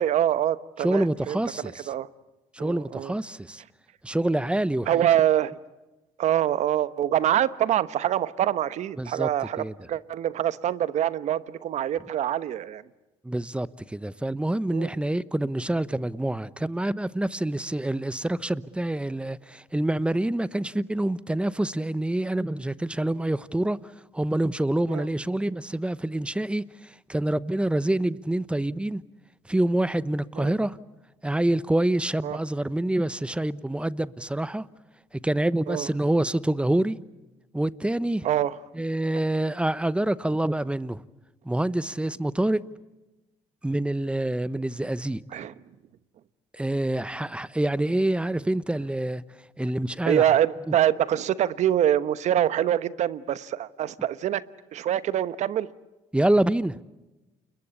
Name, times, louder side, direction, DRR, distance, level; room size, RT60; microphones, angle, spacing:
voice 1, 0.0-2.1 2.6-3.1 4.9-5.5 6.2-12.8 14.7-14.9 24.9-25.1 30.4-30.5 32.2-32.4 35.7-35.9 38.2-38.5 45.3-45.5 50.0-54.4 54.7-55.7, right 11 dB, 65° right, 1.1 m, -25 dB
voice 2, 0.8-1.9 2.5-3.6 4.0-5.0 9.0-9.3 9.6-9.7 13.2-23.8 24.1-29.0 29.5-30.8 31.2-34.7 35.2-37.0 37.5-38.3 38.7-41.0 41.4-42.6 43.6-45.4 46.5-49.2 49.6-50.2 50.7-50.8 56.1-56.8, right 1 dB, 10° right, 0.9 m, -26 dB
29.5 x 22.0 x 8.3 m
supercardioid pair, 75°, 13 cm